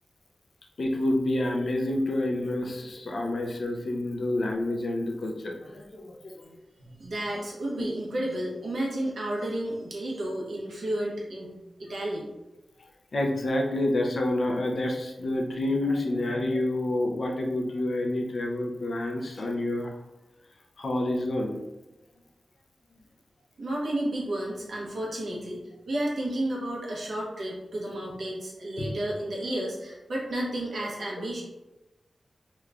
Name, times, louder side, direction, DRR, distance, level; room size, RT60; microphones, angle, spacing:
voice 1, 0.8-6.4 7.7-7.9 13.1-19.9 20.8-21.6 28.8-28.9, left 1 dB, 55° left, 1 dB, 0.5 m, -28 dB
voice 2, 6.8-12.3 23.6-31.4, right 1 dB, 75° right, -3 dB, 0.9 m, -32 dB
3.3 x 3.0 x 2.4 m, 1.0 s
wide cardioid pair, 140°, 0 cm